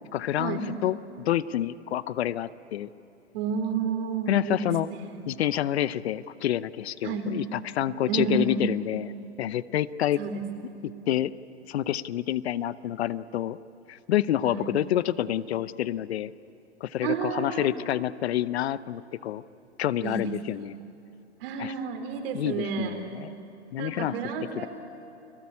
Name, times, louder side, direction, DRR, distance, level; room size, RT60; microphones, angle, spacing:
voice 1, 0.1-2.9 4.3-4.9 5.3-9.1 9.4-10.2 10.8-11.3 11.7-13.6 13.9-16.3 16.8-19.4 19.8-20.8 21.6-21.7 22.3-23.3 23.7-24.2 24.6-24.7, left 12 dB, 65° left, 17 dB, 0.8 m, -28 dB
voice 2, 3.3-5.0 7.0-7.3 8.1-8.6 10.2-10.4 14.4-14.7 17.0-17.7 20.0-20.2 21.4-23.0 23.8-24.7, right 5 dB, 55° right, 5 dB, 4.2 m, -30 dB
30.0 x 20.0 x 8.6 m, 2.9 s
hypercardioid pair, 120°, 34 cm